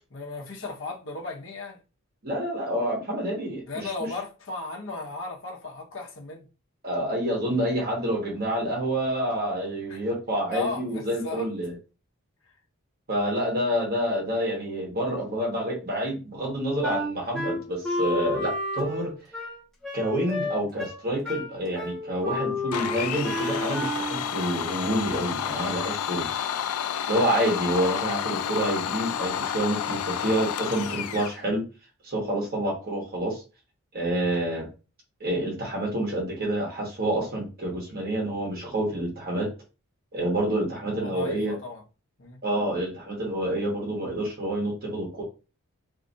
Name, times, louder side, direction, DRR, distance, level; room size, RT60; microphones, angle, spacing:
voice 1, 0.1-1.8 3.6-6.5 9.9-10.1 10.5-11.5 40.8-41.8 42.2-42.4, left 3 dB, 60° left, 0.9 m, -35 dB
voice 2, 2.2-3.6 6.8-11.7 13.1-19.1 19.9-26.3 27.1-31.6 32.0-33.4 33.9-34.7 35.2-39.5 40.1-41.5 42.4-45.2, right 1 dB, 45° right, 1.1 m, -28 dB
Wind instrument woodwind instrument, 16.8-24.3, left 1 dB, 5° left, 0.9 m, -31 dB
Domestic sounds home sounds, 22.7-31.4, left 9 dB, 90° left, 0.4 m, -30 dB
2.6 x 2.4 x 3.9 m
head